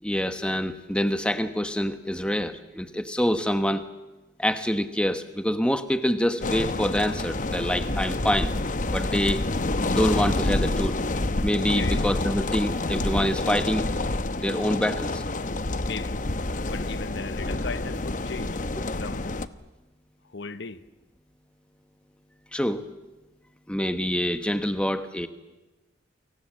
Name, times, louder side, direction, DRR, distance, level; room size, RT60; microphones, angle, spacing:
voice 1, 0.0-3.8 4.4-8.5 8.9-9.4 9.9-11.0 11.4-13.9 14.4-15.2 22.5-22.9 23.7-25.3, equal, 5° left, 1.2 m, -26 dB
sound 1, 6.4-19.5, left 2 dB, 40° left, 0.9 m, -28 dB
voice 2, 11.7-12.0 15.8-16.2 16.7-18.6 19.0-19.3 20.3-20.8, left 4 dB, 65° left, 1.0 m, -36 dB
29.5 x 24.0 x 7.5 m
head